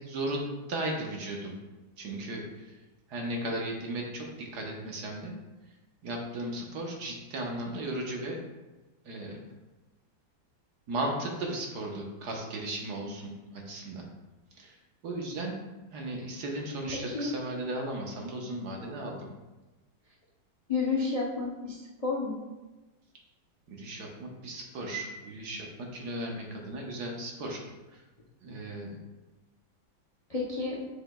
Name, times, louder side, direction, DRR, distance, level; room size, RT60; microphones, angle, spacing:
voice 1, 0.0-1.5 2.0-2.7 3.1-5.3 6.0-8.4 9.0-9.4 10.9-14.0 14.6-14.8 15.0-15.6 15.9-19.3 23.7-27.6 27.9-28.0 28.4-29.0, right 1 dB, 60° right, 0 dB, 1.5 m, -36 dB
voice 2, 16.9-17.3 20.7-22.4 30.3-30.8, left 4 dB, 75° left, -3 dB, 0.3 m, -31 dB
7.2 x 7.1 x 2.3 m, 1.1 s
omnidirectional pair, 2.2 m